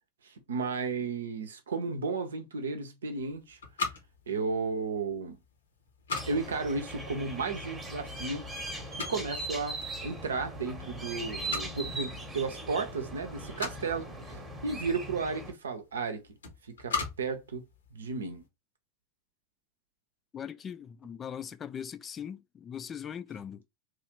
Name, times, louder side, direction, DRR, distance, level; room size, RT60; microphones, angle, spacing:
voice 1, 0.2-3.6 4.3-5.4 6.3-8.5 9.1-14.1 14.6-16.2 16.8-17.6 17.9-18.4, right 4 dB, 65° right, 0.7 m, -33 dB
sound 1, 3.2-18.4, left 4 dB, 70° left, 0.8 m, -42 dB
sound 2, 6.1-15.5, right 1 dB, 10° right, 0.9 m, -40 dB
voice 2, 20.3-23.6, left 8 dB, 25° left, 0.3 m, -40 dB
3.1 x 2.5 x 2.9 m
figure-of-eight pair, 90°, 0 cm